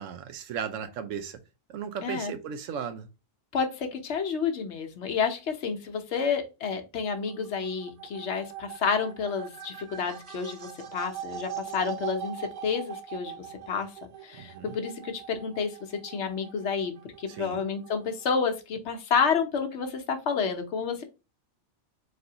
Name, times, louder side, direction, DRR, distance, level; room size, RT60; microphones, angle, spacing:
voice 1, 0.0-1.4 1.7-3.1 14.4-14.7 17.3-17.6, right 7 dB, 80° right, 1.0 m, -36 dB
voice 2, 2.0-2.3 3.5-13.9 14.2-16.9 17.2-21.0, left 6 dB, 65° left, 1.0 m, -30 dB
sound 1, 7.1-18.4, right 9 dB, 60° right, 0.5 m, -42 dB
4.1 x 3.3 x 2.8 m
omnidirectional pair, 1.3 m